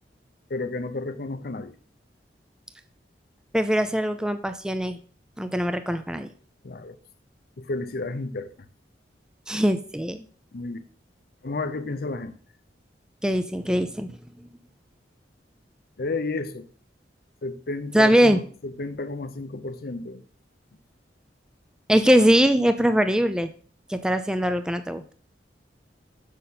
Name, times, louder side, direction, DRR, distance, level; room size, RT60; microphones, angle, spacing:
voice 1, 0.5-1.7 6.6-7.0 7.6-8.5 10.5-10.8 11.4-12.3 16.0-16.7 17.4-20.2, left 3 dB, 60° left, 0.7 m, -32 dB
voice 2, 3.5-5.0 5.4-6.3 9.5-10.2 13.2-14.2 17.9-18.4 21.9-23.5 23.9-25.0, equal, 5° right, 0.4 m, -21 dB
6.7 x 6.5 x 4.1 m
head